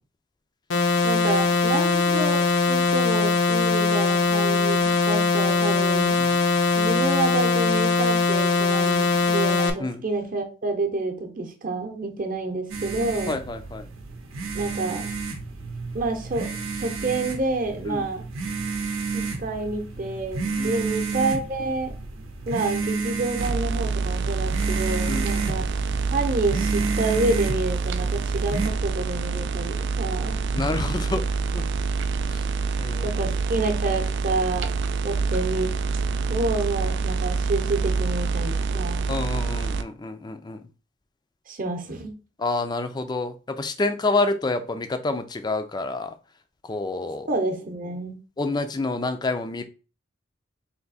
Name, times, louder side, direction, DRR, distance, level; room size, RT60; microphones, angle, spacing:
sound 1, 0.7-9.7, left 4 dB, 70° left, 0.6 m, -21 dB
voice 1, 1.0-6.2 6.7-13.4 14.5-15.1 15.9-16.5 16.7-18.2 19.1-21.9 22.5-25.7 26.1-30.4 33.0-34.7 35.0-35.7 36.3-39.1 41.5-42.1 47.3-48.2, right 2 dB, 40° right, 5 dB, 0.7 m, -28 dB
sound 2, 12.7-28.7, right 4 dB, 75° right, 0.7 m, -31 dB
voice 2, 13.3-13.9 17.9-18.1 20.6-20.7 25.1-25.3 30.5-31.2 31.5-31.6 32.3-32.4 32.8-33.1 39.1-40.6 42.4-46.1 46.7-47.3 48.4-49.6, left 3 dB, 20° left, 9 dB, 0.4 m, -28 dB
sound 3, 23.4-39.8, right 4 dB, 60° right, 0.3 m, -26 dB
3.5 x 2.7 x 4.1 m, 0.36 s
head